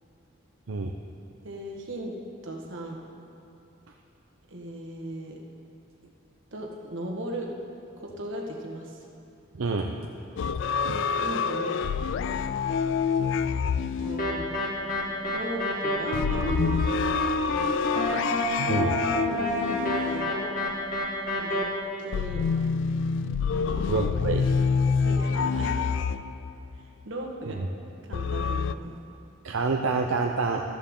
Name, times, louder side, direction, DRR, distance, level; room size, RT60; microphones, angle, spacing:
voice 1, 1.4-2.1 2.4-3.0 4.5-5.4 6.5-7.5 7.9-9.0 10.9-11.8 14.0-14.4 15.2-16.8 19.2-20.5 21.4-21.6 22.0-22.4 23.5-24.0 24.9-25.9 27.0-27.6 28.0-28.9, right 1 dB, 65° right, 0 dB, 1.6 m, -37 dB
voice 2, 9.5-9.9 10.8-11.0 18.7-19.0 23.9-24.4 27.6-27.7 29.4-30.6, right 4 dB, 85° right, 2 dB, 0.6 m, -27 dB
sound 1, 10.4-15.0 16.1-20.9 22.1-26.8 28.1-28.7, left 6 dB, 60° left, 0.3 m, -27 dB
sound 2, 14.2-21.6, left 1 dB, 45° left, 1.8 m, -28 dB
13.5 x 13.0 x 3.7 m, 2.9 s
head